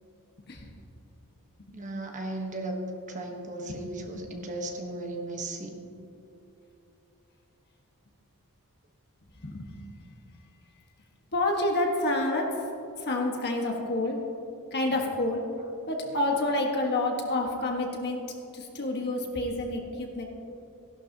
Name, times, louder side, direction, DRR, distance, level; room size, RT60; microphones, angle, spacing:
voice 1, 1.7-2.8 3.1-5.8, right 2 dB, 35° right, 1 dB, 1.2 m, -36 dB
voice 2, 9.4-10.0 11.3-12.7 13.0-14.2 14.7-15.5 15.9-20.2, left 2 dB, 50° left, 1 dB, 1.5 m, -29 dB
16.0 x 11.5 x 2.9 m, 2.9 s
head